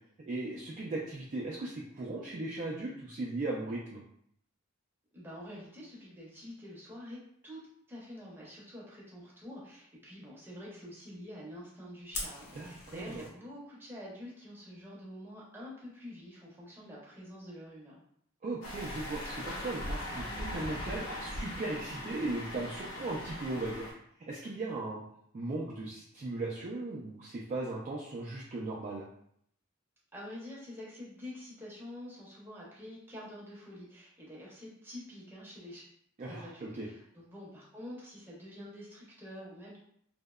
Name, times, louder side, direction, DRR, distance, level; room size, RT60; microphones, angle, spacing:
voice 1, 0.3-4.0 12.5-13.2 18.4-23.9 24.3-25.0 25.3-29.1 36.2-36.9, right 2 dB, 35° right, -4 dB, 0.3 m, -37 dB
voice 2, 5.1-7.6 7.9-18.0 30.1-35.8 36.3-39.8, left 1 dB, 10° right, -6 dB, 0.7 m, -47 dB
Fire, 12.1-13.3, left 2 dB, 50° left, 0.6 m, -41 dB
sound 1, 18.6-23.9, left 1 dB, 80° left, 0.7 m, -40 dB
2.7 x 2.0 x 2.3 m, 0.68 s
head